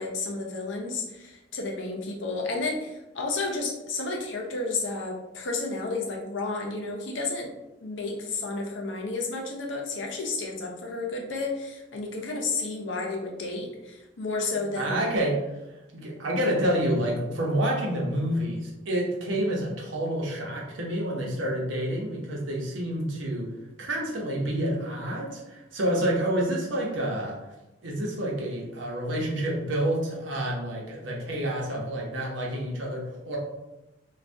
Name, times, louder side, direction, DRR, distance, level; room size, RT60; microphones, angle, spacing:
voice 1, 0.0-7.5 7.8-15.0, left 3 dB, 70° left, 1 dB, 0.6 m, -31 dB
voice 2, 14.7-15.4 15.9-23.5 23.8-27.4 27.8-33.4, right 1 dB, 75° right, -2 dB, 0.8 m, -28 dB
2.6 x 2.3 x 3.3 m, 0.99 s
head